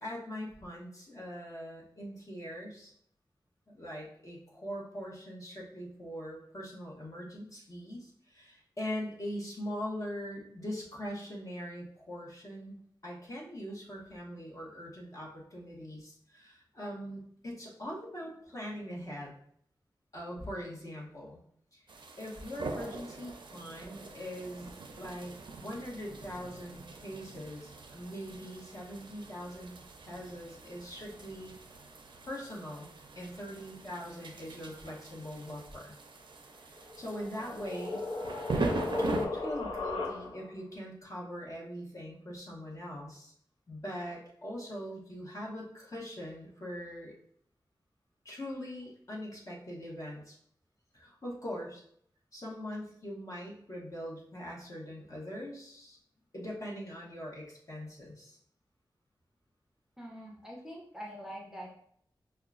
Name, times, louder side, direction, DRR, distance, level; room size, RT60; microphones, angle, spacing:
voice 1, 0.0-2.9 3.7-19.3 20.1-21.4 21.7-25.3 25.6-29.8 30.0-31.6 32.2-32.9 33.2-35.9 36.6-38.1 38.5-43.3 43.7-47.1 48.2-50.4 50.9-51.8 52.3-56.0 56.3-58.4, equal, 40° left, -4 dB, 1.2 m, -42 dB
sound 1, 21.9-39.3, right 3 dB, 75° right, 0.5 m, -42 dB
sound 2, 36.8-40.6, left 3 dB, 85° left, 0.6 m, -36 dB
voice 2, 60.0-61.8, equal, 5° right, -2 dB, 0.6 m, -44 dB
5.5 x 2.2 x 2.4 m, 0.65 s
wide cardioid pair, 105°, 8 cm